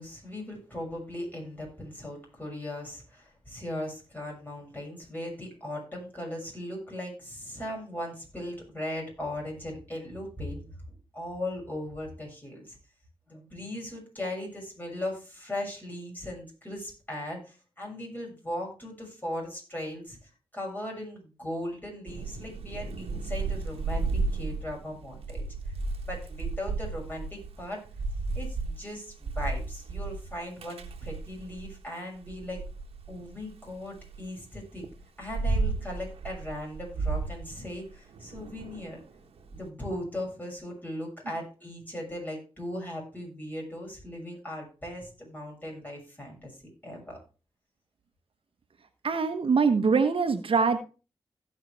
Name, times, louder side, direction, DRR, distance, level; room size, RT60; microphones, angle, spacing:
voice 1, 0.0-10.6 10.9-12.7 13.3-25.4 26.0-27.8 28.3-32.6 33.1-34.8 35.2-39.0 39.5-46.5 46.8-47.2, left 1 dB, 20° left, -1 dB, 6.7 m, -38 dB
Thunder / Rain, 22.1-31.8 32.2-34.2 34.8-39.6, right 3 dB, 90° right, 1.5 m, -33 dB
voice 2, 49.0-50.8, right 5 dB, 65° right, 7 dB, 1.2 m, -23 dB
16.5 x 5.8 x 3.4 m, 0.33 s
cardioid pair, 50°, 10 cm